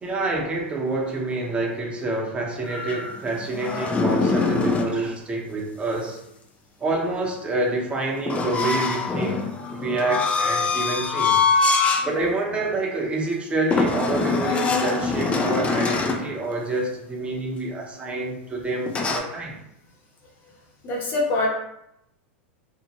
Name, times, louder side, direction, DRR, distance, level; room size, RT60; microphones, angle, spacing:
voice 1, 0.0-6.2 6.8-9.4 9.7-11.7 12.0-19.6, right 2 dB, 15° right, -1 dB, 0.7 m, -27 dB
sound 1, 2.7-5.0 8.3-12.1 12.5-12.7 13.7-16.3 18.9-19.2, left 4 dB, 20° left, 0.4 m, -23 dB
voice 2, 20.8-21.5, left 2 dB, 35° left, -2 dB, 0.9 m, -25 dB
2.7 x 2.1 x 2.9 m, 0.81 s
hypercardioid pair, 110°, 6 cm